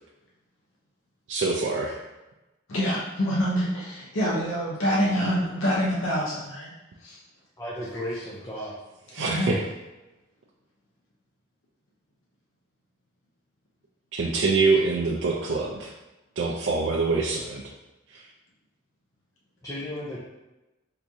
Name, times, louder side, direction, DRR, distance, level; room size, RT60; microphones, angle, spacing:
voice 1, 1.3-2.0 9.1-9.6 14.1-15.9 16.4-17.6 18.1-18.3, right 3 dB, 65° right, -3 dB, 0.4 m, -25 dB
voice 2, 2.7-6.7 7.0-7.2 9.2-9.5, equal, 90° left, -5 dB, 0.6 m, -26 dB
voice 3, 7.6-8.8 19.6-20.2, equal, 15° left, -7 dB, 0.5 m, -34 dB
3.5 x 2.9 x 2.6 m, 1.0 s
head